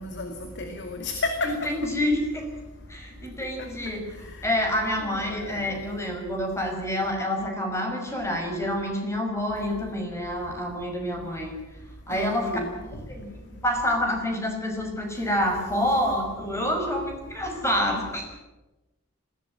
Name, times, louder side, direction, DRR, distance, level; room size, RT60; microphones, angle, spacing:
voice 1, 0.0-1.7 3.6-3.7 5.0-5.6 12.1-12.8, left 2 dB, 55° left, 5 dB, 2.4 m, -32 dB
voice 2, 1.4-2.5 2.9-11.5 12.1-12.6 13.1-18.2, left 1 dB, 15° left, 3 dB, 5.7 m, -28 dB
21.0 x 17.0 x 10.0 m, 1.1 s
head